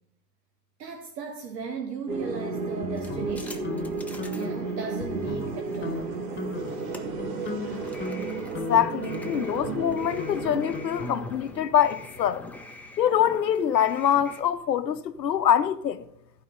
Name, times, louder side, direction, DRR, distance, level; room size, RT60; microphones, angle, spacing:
voice 1, 0.8-3.8 4.3-6.1, right 5 dB, 75° right, 1.3 m, -36 dB
sound 1, 2.1-12.2, right 3 dB, 55° right, 2.0 m, -34 dB
sound 2, 2.8-3.9 4.2-4.6 5.0-5.6 5.8-6.0 6.4-6.8 7.2-11.5, left 3 dB, 20° left, 2.0 m, -36 dB
sound 3, 2.9-14.4, left 2 dB, 5° left, 1.0 m, -46 dB
voice 2, 8.7-12.5 13.0-16.1, left 9 dB, 80° left, 0.9 m, -24 dB
14.5 x 4.9 x 5.4 m
hypercardioid pair, 95°, 49 cm